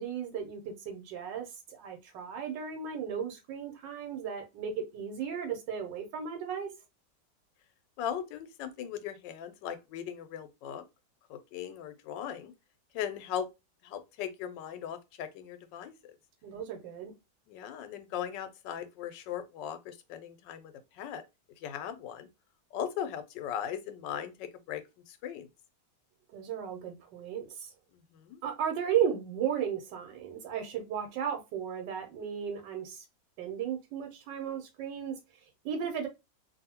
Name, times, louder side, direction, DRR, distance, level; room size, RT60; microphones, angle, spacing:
voice 1, 0.0-6.7 16.4-17.1 26.3-27.7 28.4-33.0 33.4-35.1 35.6-36.1, right 8 dB, 90° right, 1.4 m, -35 dB
voice 2, 8.0-10.8 11.3-12.5 12.9-13.5 13.8-15.9 17.5-21.2 21.6-22.3 22.7-25.5 28.1-28.4, left 9 dB, 85° left, 1.2 m, -38 dB
2.6 x 2.6 x 2.8 m
omnidirectional pair, 1.9 m